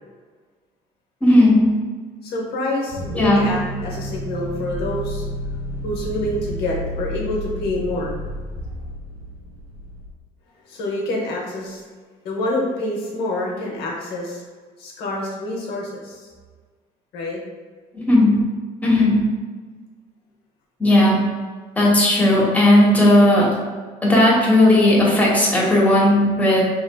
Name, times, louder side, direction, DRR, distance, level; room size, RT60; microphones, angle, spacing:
voice 1, 1.2-1.6 3.1-3.4 18.1-18.4 18.8-19.2 20.8-21.2 21.8-23.5 24.0-26.6, left 1 dB, 10° left, -5 dB, 1.0 m, -15 dB
voice 2, 2.2-5.2 5.8-8.2 8.6-8.7 10.6-11.8 12.2-14.4 14.8-16.3 17.1-17.4, left 1 dB, 70° left, -3 dB, 0.9 m, -27 dB
sound 1, 2.9-10.1, equal, 70° right, 1.1 m, -31 dB
3.2 x 3.0 x 2.2 m, 1.5 s
supercardioid pair, 85°, 17 cm